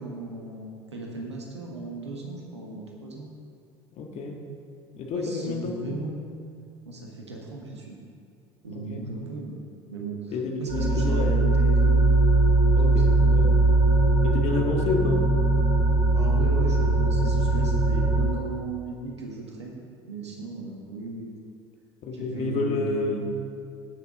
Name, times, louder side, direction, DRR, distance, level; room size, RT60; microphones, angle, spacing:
voice 1, 0.0-3.3 5.1-6.3 6.8-8.0 8.6-9.6 9.9-10.3 10.6-12.5 12.9-13.4 16.1-21.3 22.1-23.3, right 2 dB, 90° right, -1 dB, 1.6 m, -36 dB
voice 2, 3.9-4.4 5.0-5.8 8.7-9.2 10.3-11.4 12.8-13.8 14.2-15.3 22.0-23.3, left 3 dB, 50° left, 2 dB, 1.6 m, -30 dB
sound 1, 10.7-18.3, right 2 dB, 60° right, 2.5 m, -20 dB
17.0 x 6.3 x 3.8 m, 2.3 s
hypercardioid pair, 70°, 14 cm